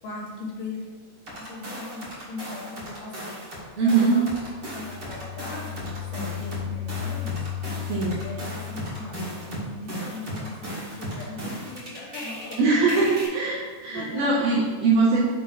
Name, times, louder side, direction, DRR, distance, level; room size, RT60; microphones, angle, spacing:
voice 1, 0.0-0.9 1.4-3.4 3.8-4.3 4.7-7.4 8.2-13.0 13.9-14.6, left 2 dB, 65° left, -3 dB, 2.2 m, -39 dB
sound 1, 1.3-3.6 3.9-12.5 12.9-13.3, equal, 60° right, 1.1 m, -36 dB
voice 2, 3.8-4.2 7.9-8.3 12.6-15.2, right 4 dB, 80° right, -4 dB, 2.1 m, -22 dB
sound 2, 4.4-10.0, left 12 dB, 90° left, 3.1 m, -35 dB
7.0 x 4.2 x 4.6 m, 1.5 s
omnidirectional pair, 5.1 m